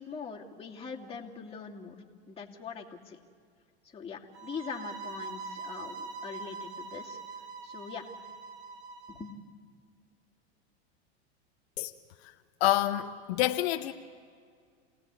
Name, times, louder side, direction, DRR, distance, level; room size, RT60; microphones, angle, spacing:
voice 1, 0.0-1.9 2.3-3.2 3.9-7.2 7.6-8.1 9.1-9.3, left 5 dB, 15° left, -2 dB, 2.7 m, -42 dB
sound 1, 4.3-9.3, right 4 dB, 75° right, 2.8 m, -43 dB
voice 2, 12.6-13.9, left 14 dB, 65° left, 7 dB, 1.0 m, -27 dB
28.5 x 18.0 x 8.4 m, 2.1 s
hypercardioid pair, 110°, 34 cm